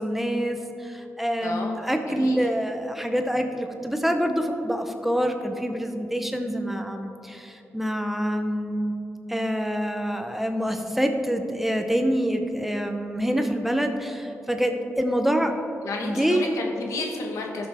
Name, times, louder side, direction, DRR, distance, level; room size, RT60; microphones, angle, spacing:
voice 1, 0.0-9.0 9.3-15.6 16.0-16.6, equal, 5° right, 5 dB, 0.8 m, -26 dB
voice 2, 1.4-1.7 2.2-2.4 15.8-17.7, left 3 dB, 85° left, 1 dB, 1.2 m, -31 dB
13.0 x 6.0 x 3.6 m, 2.7 s
cardioid pair, 70°, 5 cm